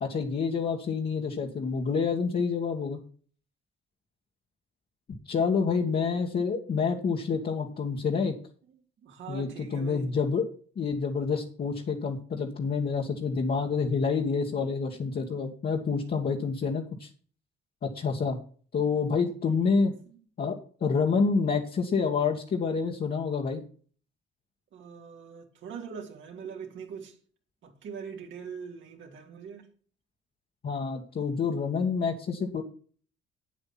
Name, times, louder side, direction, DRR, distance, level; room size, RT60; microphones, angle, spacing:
voice 1, 0.0-3.0 5.3-8.3 9.3-10.5 10.8-17.1 17.8-18.4 18.7-19.9 20.4-23.6 30.6-32.6, left 5 dB, 50° left, 1.8 m, -28 dB
voice 2, 9.0-10.1 20.1-20.2 24.7-27.2 27.6-29.7, right 6 dB, 70° right, 3.1 m, -42 dB
8.9 x 8.2 x 5.9 m
cardioid pair, 90°, 20 cm